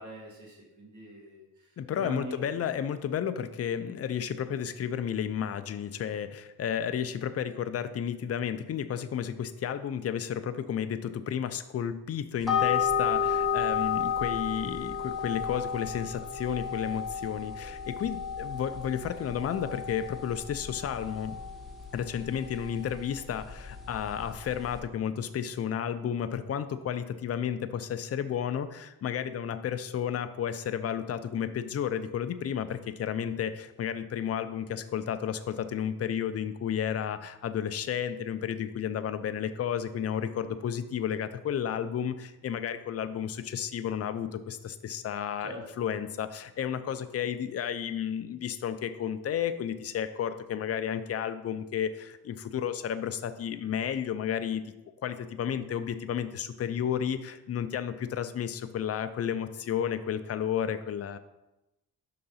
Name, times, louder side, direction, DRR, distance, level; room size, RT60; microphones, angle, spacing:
voice 1, 0.0-1.7 2.0-2.4 45.4-45.6, right 1 dB, 55° right, -3 dB, 2.2 m, -42 dB
voice 2, 1.8-21.4 21.9-54.6 55.0-61.2, left 8 dB, 40° left, 10 dB, 0.5 m, -32 dB
sound 1, 12.4-24.8, left 7 dB, ahead, 0.9 m, -33 dB
5.6 x 3.9 x 5.5 m, 0.96 s
cardioid pair, 115°, 36 cm